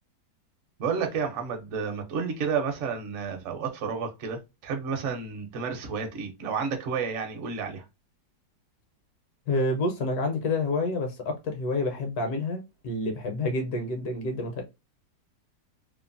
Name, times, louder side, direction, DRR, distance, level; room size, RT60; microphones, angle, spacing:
voice 1, 0.8-7.8, right 5 dB, 60° right, 0.8 m, -31 dB
voice 2, 9.5-14.6, left 2 dB, 70° left, 1.1 m, -28 dB
3.0 x 2.0 x 2.4 m
omnidirectional pair, 1.9 m